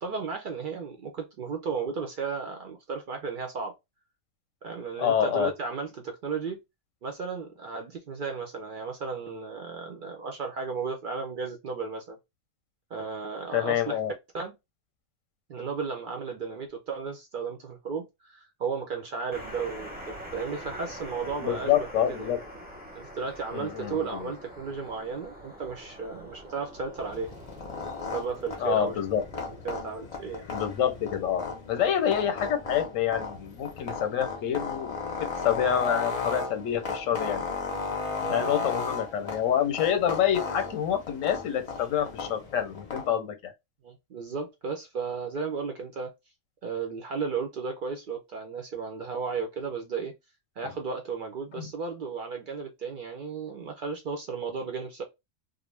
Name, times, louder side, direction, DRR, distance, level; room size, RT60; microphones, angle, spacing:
voice 1, 0.0-3.7 4.6-6.6 7.0-12.2 12.9-14.0 14.3-14.5 15.5-22.4 22.9-27.3 28.1-29.0 29.5-30.4 38.2-38.8 43.8-46.1 46.6-50.1 50.6-55.0, right 5 dB, 65° right, 0.5 m, -34 dB
voice 2, 5.0-5.5 13.5-14.1 21.4-22.4 23.5-24.3 28.6-29.2 30.5-37.4 38.3-43.5 51.6-51.7, left 9 dB, 90° left, 1.0 m, -27 dB
sound 1, 19.3-29.8, equal, 10° right, 0.6 m, -44 dB
sound 2, 27.0-43.1, left 4 dB, 50° left, 0.4 m, -35 dB
2.4 x 2.0 x 3.1 m
omnidirectional pair, 1.3 m